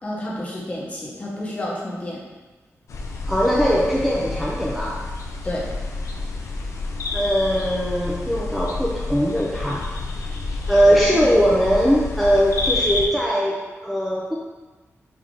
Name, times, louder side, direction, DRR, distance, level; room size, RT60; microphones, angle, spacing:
voice 1, 0.0-2.2 5.4-5.7 10.9-11.4, left 1 dB, 25° left, -4 dB, 1.0 m, -30 dB
sound 1, 2.9-13.1, left 3 dB, 80° left, 0.5 m, -29 dB
voice 2, 3.3-5.1 7.1-9.9 10.7-14.3, equal, ahead, -5 dB, 0.4 m, -20 dB
5.1 x 2.7 x 3.7 m, 1.2 s
wide cardioid pair, 145°, 5 cm